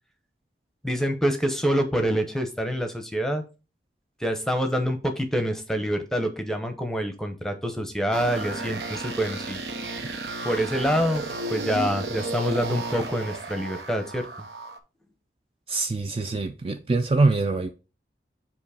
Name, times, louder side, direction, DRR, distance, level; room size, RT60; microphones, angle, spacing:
voice 1, 0.8-3.4 4.2-9.6 10.4-11.2 11.5-14.3, equal, 5° left, 0.7 m, -26 dB
sound 1, 8.1-14.8, right 2 dB, 85° right, 0.8 m, -33 dB
voice 2, 15.7-17.7, right 3 dB, 30° right, 0.3 m, -24 dB
7.1 x 3.0 x 4.9 m
head